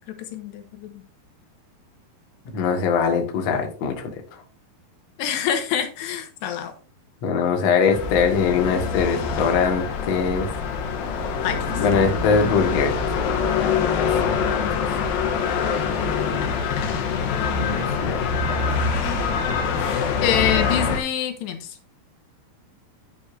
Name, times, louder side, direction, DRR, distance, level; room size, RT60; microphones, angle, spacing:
voice 1, 0.1-1.0 2.5-2.6 5.2-6.7 11.4-11.6 20.2-21.7, left 9 dB, 85° left, 6 dB, 3.3 m, -26 dB
voice 2, 2.5-4.1 7.2-10.5 11.8-12.9 13.3-13.4 14.0-14.1 14.4-14.6 17.6-18.2, left 5 dB, 55° left, 3 dB, 2.1 m, -22 dB
sound 1, 7.9-21.0, left 5 dB, 70° left, 2.8 m, -24 dB
11.0 x 6.8 x 2.6 m, 0.38 s
omnidirectional pair, 4.9 m